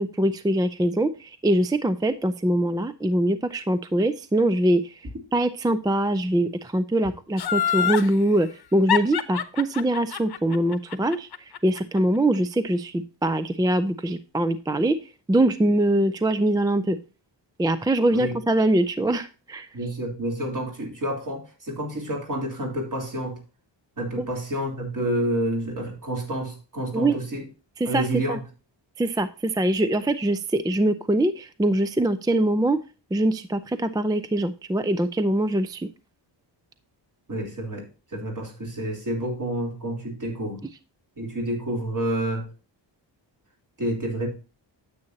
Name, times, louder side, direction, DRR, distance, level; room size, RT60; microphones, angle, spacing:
voice 1, 0.0-4.9 5.3-11.3 11.6-15.0 15.3-17.0 17.6-19.7 26.9-27.2 27.8-28.4 29.0-32.8 33.1-35.9, right 1 dB, 10° right, 12 dB, 0.3 m, -23 dB
Laughter, 7.4-8.1 8.9-12.0 12.3-12.4, left 9 dB, 55° left, 0.9 m, -25 dB
voice 2, 19.7-23.4 24.0-27.5 27.8-28.4 37.3-40.6 41.2-42.5 43.8-44.3, right 1 dB, 45° right, 1 dB, 3.3 m, -29 dB
9.5 x 8.3 x 2.7 m, 0.32 s
wide cardioid pair, 175°, 45 cm